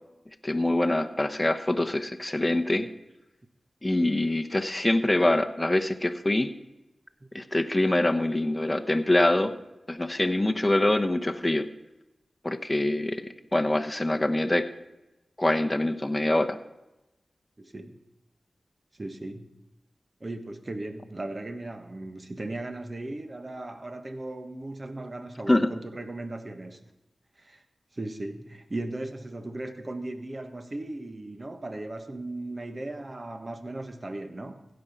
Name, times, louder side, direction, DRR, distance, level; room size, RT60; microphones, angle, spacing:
voice 1, 0.4-2.9 3.8-6.5 7.3-9.5 9.9-11.7 12.4-13.2 13.5-14.7 15.4-16.6 25.5-25.7, left 1 dB, 20° left, 0.9 m, -24 dB
voice 2, 17.6-18.0 19.0-19.6 20.2-26.9 27.4-27.6 27.9-34.7, right 2 dB, 40° right, 1.3 m, -37 dB
16.0 x 5.3 x 5.8 m
cardioid pair, 50°, 0 cm